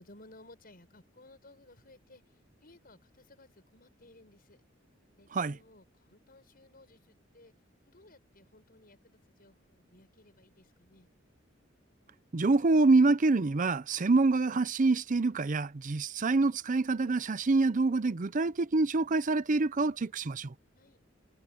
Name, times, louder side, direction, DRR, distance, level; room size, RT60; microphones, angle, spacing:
voice 1, 0.0-4.6 5.1-7.5 7.9-11.1 20.7-21.0, left 2 dB, 50° left, 7.0 m, -58 dB
voice 2, 12.3-20.5, right 3 dB, 45° right, 0.6 m, -26 dB
head